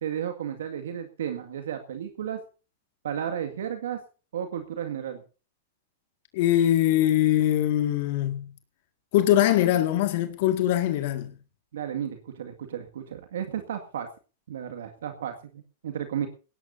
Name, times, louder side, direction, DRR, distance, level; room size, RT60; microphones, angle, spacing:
voice 1, 0.0-2.4 3.0-4.0 4.3-5.2 11.7-14.1 14.5-16.3, right 9 dB, 75° right, 2.0 m, -33 dB
voice 2, 6.3-8.5 9.1-11.3, left 12 dB, 60° left, 1.9 m, -22 dB
20.0 x 17.0 x 2.7 m
hypercardioid pair, 115°, 0 cm